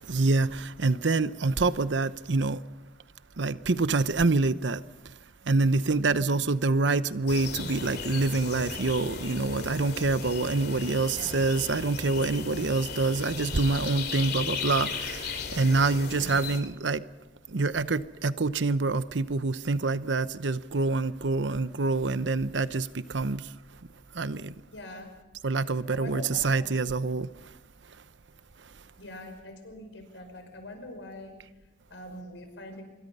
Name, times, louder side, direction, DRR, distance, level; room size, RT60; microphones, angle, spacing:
voice 1, 0.1-2.6 3.4-4.8 5.5-17.0 17.5-23.4 24.1-24.5 25.4-27.3, right 3 dB, 75° right, 0.9 m, -26 dB
sound 1, 7.3-16.6, left 5 dB, 60° left, 2.7 m, -36 dB
voice 2, 10.8-11.4 12.2-12.4 16.2-16.5 24.7-25.1 25.6-26.7 29.0-31.3 31.6-32.8, left 1 dB, 90° left, 5.5 m, -44 dB
26.5 x 23.0 x 5.5 m
head